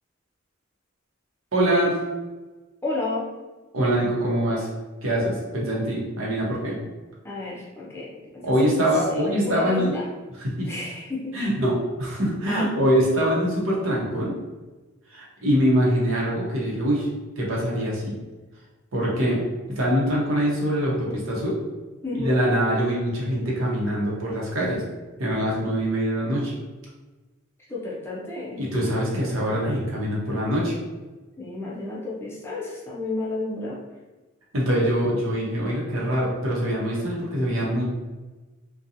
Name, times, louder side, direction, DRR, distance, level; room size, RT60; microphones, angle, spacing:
voice 1, 1.5-2.0 3.7-4.7 5.0-6.7 8.4-10.0 10.4-10.7 11.3-14.3 15.1-17.1 17.4-18.2 18.9-19.4 19.7-21.6 22.1-24.8 25.2-26.5 28.6-30.7 34.5-37.9, equal, 85° right, -4 dB, 0.8 m, -24 dB
voice 2, 2.8-3.3 7.2-8.5 8.9-10.0 10.6-11.5 12.5-12.7 21.1-21.2 22.0-22.4 27.7-28.6 29.1-29.3 31.4-33.8, left 2 dB, 10° left, -6 dB, 0.4 m, -32 dB
2.7 x 2.2 x 2.5 m, 1.2 s
head